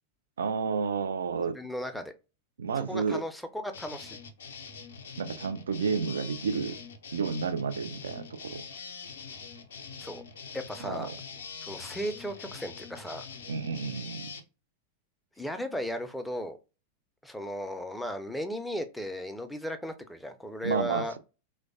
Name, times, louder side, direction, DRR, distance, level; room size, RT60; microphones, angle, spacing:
voice 1, 0.4-1.6 2.6-3.2 5.2-6.8 7.1-8.6 10.8-11.2 13.5-14.3 20.6-21.2, right 5 dB, 65° right, 0.3 m, -31 dB
voice 2, 1.5-2.1 2.8-4.2 10.0-10.2 10.5-11.1 11.6-13.3 15.4-16.6 17.2-21.1, equal, 5° left, 0.4 m, -36 dB
sound 1, 3.7-14.4, left 5 dB, 65° left, 0.4 m, -44 dB
3.1 x 2.1 x 2.5 m
figure-of-eight pair, 90°, 0 cm